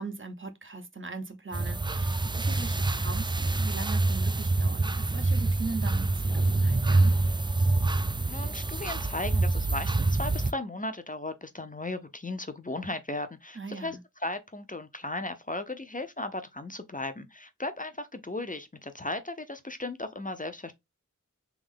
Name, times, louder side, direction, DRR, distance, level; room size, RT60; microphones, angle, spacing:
voice 1, 0.0-7.2 13.5-14.0, right 3 dB, 40° right, 0.8 m, -39 dB
sound 1, 1.5-10.5, right 2 dB, 15° right, 0.3 m, -26 dB
voice 2, 8.3-20.7, left 2 dB, 25° left, 0.6 m, -36 dB
3.5 x 3.1 x 3.6 m
wide cardioid pair, 55°, 31 cm